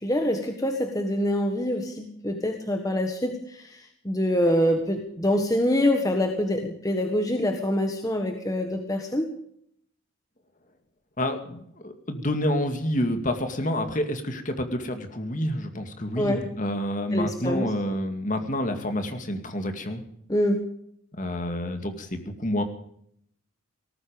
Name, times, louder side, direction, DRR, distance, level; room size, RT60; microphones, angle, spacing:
voice 1, 0.0-9.3 16.2-16.4 17.1-17.7 20.3-20.6, left 1 dB, 15° left, 4 dB, 1.5 m, -25 dB
voice 2, 11.2-20.0 21.1-22.6, left 1 dB, 40° left, 6 dB, 2.3 m, -28 dB
18.5 x 14.5 x 5.2 m, 0.69 s
head